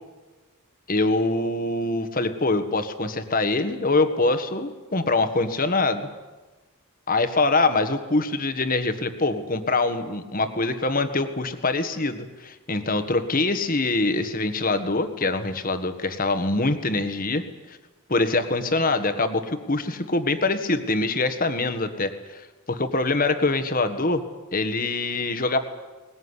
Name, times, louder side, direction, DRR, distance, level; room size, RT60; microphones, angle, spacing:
voice 1, 0.9-6.1 7.1-17.8 18.1-24.2 24.5-25.6, left 2 dB, 40° left, 9 dB, 1.6 m, -24 dB
20.5 x 19.5 x 9.9 m, 1.2 s
head